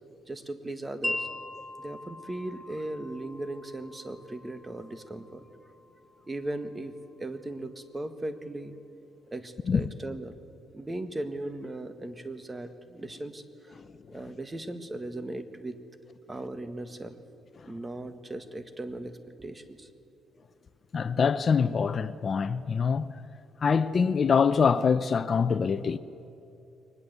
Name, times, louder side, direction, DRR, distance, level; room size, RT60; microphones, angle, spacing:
voice 1, 0.3-1.3 1.8-5.4 6.3-6.9 7.2-8.8 9.3-10.4 10.7-13.8 14.1-15.8 16.3-17.2 17.7-19.1 19.4-19.9, right 1 dB, 20° right, 1.8 m, -37 dB
Wind chime, 1.0-7.1, left 2 dB, ahead, 1.9 m, -41 dB
voice 2, 20.9-23.1 23.6-26.0, left 6 dB, 45° left, 0.7 m, -24 dB
23.0 x 20.0 x 8.3 m
cardioid pair, 90°, 0 cm